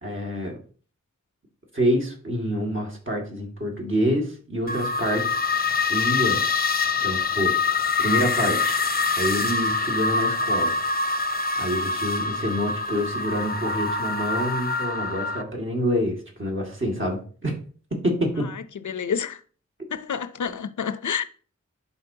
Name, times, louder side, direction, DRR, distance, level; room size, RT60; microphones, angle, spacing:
voice 1, 0.0-0.6 1.7-5.6 5.9-6.5 7.0-8.9 9.2-10.7 11.6-17.5 18.0-18.5, equal, 40° right, 2.0 m, -27 dB
sound 1, 4.7-15.4, left 4 dB, 30° left, 0.7 m, -25 dB
voice 2, 18.8-19.4 19.9-21.2, left 7 dB, 80° left, 0.6 m, -28 dB
11.5 x 4.3 x 2.7 m
wide cardioid pair, 65°, 30 cm